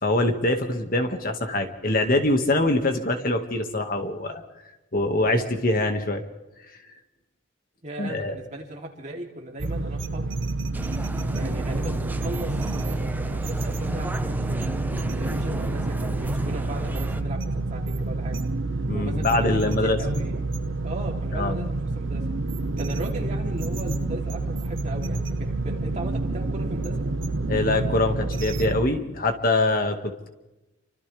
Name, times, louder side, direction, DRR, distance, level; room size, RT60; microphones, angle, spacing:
voice 1, 0.0-4.4 4.9-6.2 8.0-8.3 18.9-20.0 21.3-21.5 27.5-30.3, left 2 dB, 50° left, 4 dB, 2.0 m, -24 dB
voice 2, 7.8-10.3 11.3-14.7 15.1-18.4 18.9-22.2 22.8-27.0, right 1 dB, 40° right, -1 dB, 3.3 m, -37 dB
sound 1, 9.6-28.8, right 2 dB, 85° right, 1.1 m, -28 dB
sound 2, 10.7-17.2, right 1 dB, 10° right, 0.6 m, -33 dB
29.0 x 25.0 x 3.5 m, 1.0 s
head